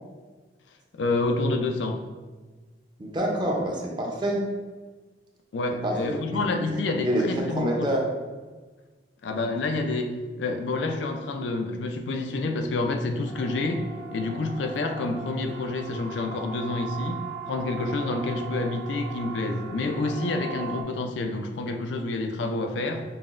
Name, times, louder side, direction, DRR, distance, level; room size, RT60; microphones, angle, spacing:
voice 1, 0.9-2.0 5.5-7.9 9.2-17.2 17.5-23.0, left 2 dB, 85° left, 5 dB, 0.4 m, -28 dB
voice 2, 3.0-4.4 5.8-6.8 7.0-8.0, right 1 dB, 25° right, -1 dB, 0.6 m, -27 dB
Siren, 13.2-20.8, right 4 dB, 80° right, 0.5 m, -39 dB
5.5 x 2.1 x 2.4 m, 1.3 s
head